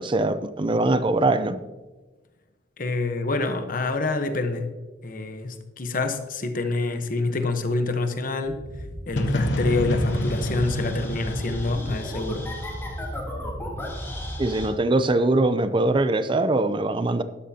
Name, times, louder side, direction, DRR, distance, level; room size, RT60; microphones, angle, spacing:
voice 1, 0.0-1.6 14.4-17.2, right 2 dB, 25° right, 12 dB, 0.5 m, -22 dB
voice 2, 2.8-4.7 5.0-8.6 9.1-12.5, left 3 dB, 50° left, 7 dB, 1.0 m, -27 dB
sound 1, 8.4-14.7, equal, 15° left, 3.2 m, -34 dB
sound 2, 9.2-13.0, equal, 80° left, 1.0 m, -28 dB
12.5 x 10.5 x 2.8 m, 1.2 s
head